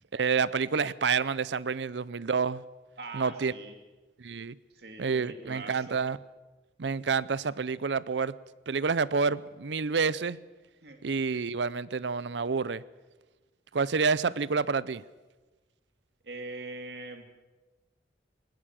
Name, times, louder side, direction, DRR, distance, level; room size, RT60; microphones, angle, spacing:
voice 1, 0.1-2.6 3.1-3.5 4.2-4.5 5.0-6.2 6.8-8.3 8.7-10.4 11.0-12.8 13.7-15.0, right 5 dB, 85° right, 20 dB, 0.6 m, -28 dB
voice 2, 3.0-3.8 4.7-6.0 10.8-11.0 16.2-17.2, right 3 dB, 65° right, 5 dB, 2.7 m, -42 dB
20.0 x 18.0 x 7.6 m, 1.2 s
head